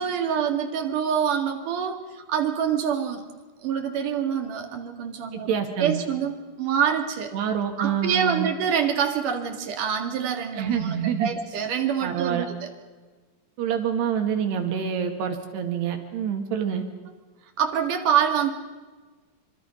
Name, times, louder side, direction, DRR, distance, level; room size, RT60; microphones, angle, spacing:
voice 1, 0.0-3.2 3.6-7.3 7.8-12.7 17.6-18.5, right 8 dB, 55° right, 5 dB, 3.3 m, -26 dB
voice 2, 5.3-6.0 7.3-8.5 10.5-11.3 12.0-12.5 13.6-16.8, right 8 dB, 75° right, 5 dB, 4.1 m, -26 dB
26.0 x 26.0 x 5.3 m, 1.3 s
omnidirectional pair, 4.9 m